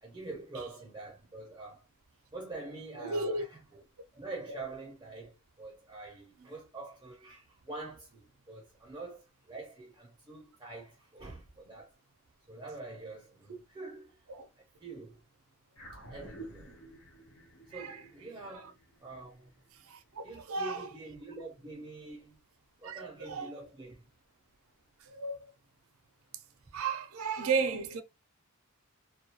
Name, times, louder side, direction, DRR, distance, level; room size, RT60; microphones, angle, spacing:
voice 1, 0.0-1.9 2.3-3.8 4.1-12.0 12.5-14.2 14.6-15.2 16.1-16.8 17.7-18.7 19.0-19.5 20.2-22.4 22.8-24.1, right 2 dB, 20° right, 0.5 m, -45 dB
voice 2, 3.0-3.5 13.5-13.6 14.3-14.5 17.7-18.1 18.5-18.7 19.8-20.9 22.8-23.5 25.0-25.4 26.7-28.0, right 4 dB, 70° right, 0.4 m, -34 dB
sound 1, 15.8-20.4, right 1 dB, 85° left, 0.9 m, -51 dB
2.2 x 2.2 x 2.7 m
head